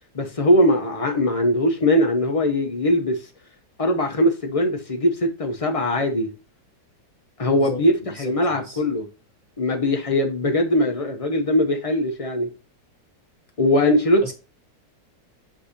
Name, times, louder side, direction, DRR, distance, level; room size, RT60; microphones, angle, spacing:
voice 1, 0.1-3.2 3.8-6.3 7.4-9.0 9.6-12.5 13.6-14.3, left 1 dB, 60° left, 0.3 m, -21 dB
voice 2, 7.5-8.8 14.2-14.3, right 1 dB, 25° right, 1.1 m, -37 dB
7.6 x 2.8 x 4.9 m
omnidirectional pair, 1.8 m